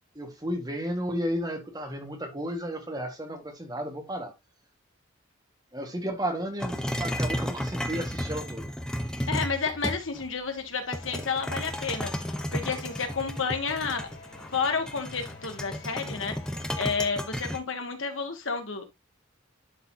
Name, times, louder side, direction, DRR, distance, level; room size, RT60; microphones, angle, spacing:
voice 1, 0.1-4.3 5.7-8.7, equal, 20° right, 1.6 m, -33 dB
sound 1, 6.6-10.3 10.9-17.6, equal, 5° left, 0.7 m, -33 dB
voice 2, 9.3-12.1 12.5-14.1 14.5-16.4 16.8-18.8, left 5 dB, 75° left, 1.7 m, -30 dB
sound 2, 11.0-16.7, left 3 dB, 55° left, 3.7 m, -49 dB
11.5 x 4.2 x 2.8 m
head